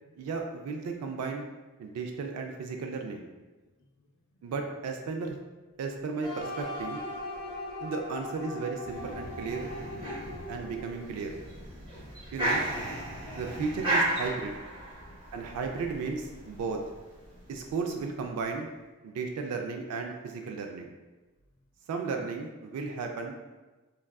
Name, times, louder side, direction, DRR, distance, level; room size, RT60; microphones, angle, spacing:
voice 1, 0.2-1.4 1.8-3.2 4.4-5.4 5.8-7.0 7.8-9.7 10.5-11.4 12.3-12.6 13.4-14.5 15.3-16.8 17.5-18.7 19.0-20.9 21.9-23.4, right 4 dB, 90° right, 5 dB, 0.3 m, -34 dB
voice 2, 3.8-4.5 10.1-10.7 12.0-12.1 14.9-15.4 17.2-17.3 19.0-19.1, left 1 dB, 60° left, -4 dB, 0.4 m, -57 dB
sound 1, 6.2-11.2, left 1 dB, 20° left, 0.8 m, -39 dB
sound 2, 8.8-18.0, right 1 dB, 25° right, 0.6 m, -35 dB
3.5 x 2.3 x 2.2 m, 1.2 s
head